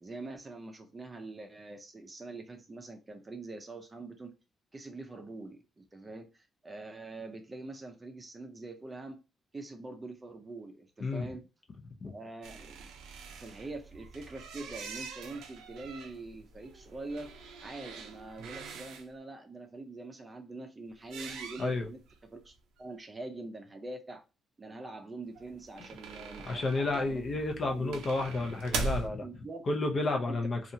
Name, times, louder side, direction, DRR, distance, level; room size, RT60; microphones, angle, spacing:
voice 1, 0.0-4.3 4.7-9.2 9.5-11.5 12.1-12.9 13.3-17.3 17.6-22.0 22.3-24.2 24.6-27.2 27.6-28.0 29.1-29.6 30.0-30.4, right 2 dB, 25° right, 0.5 m, -44 dB
sound 1, 12.4-19.1 21.0-22.1 22.5-22.6 22.8-22.9 25.3-29.1, right 4 dB, 90° right, 0.5 m, -42 dB
voice 2, 26.4-29.3 29.7-30.6, left 2 dB, 45° left, 0.6 m, -31 dB
2.7 x 2.4 x 2.7 m
cardioid pair, 90°, 0 cm